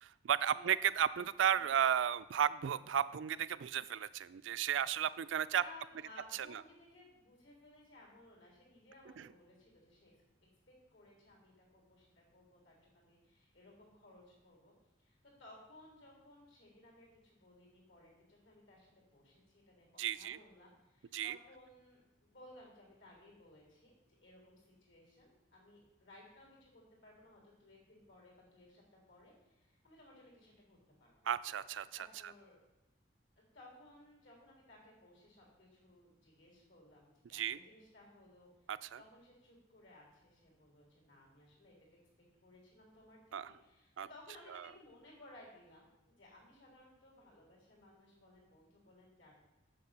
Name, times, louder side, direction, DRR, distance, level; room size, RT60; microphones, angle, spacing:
voice 1, 0.0-5.6 6.3-6.6 9.2-9.3 20.0-20.4 21.1-21.4 31.3-32.3 37.3-37.6 38.7-39.0 43.3-43.5 44.0-44.1 44.5-44.7, right 9 dB, 80° right, 15 dB, 0.4 m, -34 dB
voice 2, 1.4-1.8 5.5-10.2 10.7-14.7 15.0-23.9 24.2-31.1 32.0-32.6 33.4-38.5 39.0-42.0 42.4-49.3, left 1 dB, 80° left, -2 dB, 3.7 m, -60 dB
7.6 x 6.7 x 5.7 m, 1.0 s
head